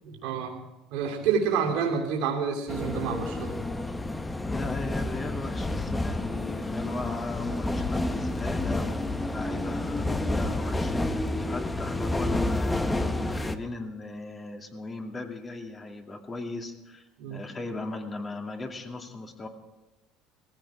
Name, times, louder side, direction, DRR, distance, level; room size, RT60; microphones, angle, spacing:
voice 1, 0.0-0.6 0.9-3.6 17.2-17.4, right 6 dB, 80° right, -1 dB, 2.8 m, -28 dB
sound 1, 2.7-13.6, left 2 dB, 15° left, 1.1 m, -29 dB
voice 2, 4.4-19.5, left 2 dB, 30° left, 2 dB, 2.6 m, -38 dB
19.0 x 15.0 x 4.9 m, 1.0 s
supercardioid pair, 95°, 0 cm